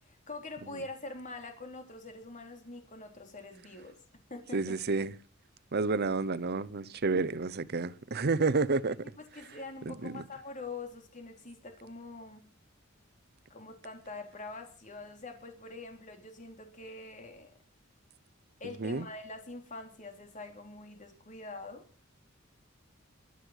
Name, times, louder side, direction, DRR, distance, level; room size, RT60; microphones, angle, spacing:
voice 1, 0.0-4.0 4.3-4.8 7.1-7.3 9.1-12.5 13.5-17.5 18.6-21.9, left 3 dB, 40° left, 3.6 m, -44 dB
voice 2, 4.5-5.1 5.7-9.0 9.9-10.2 18.6-19.1, right 3 dB, 50° right, 0.8 m, -30 dB
23.5 x 8.0 x 6.5 m
head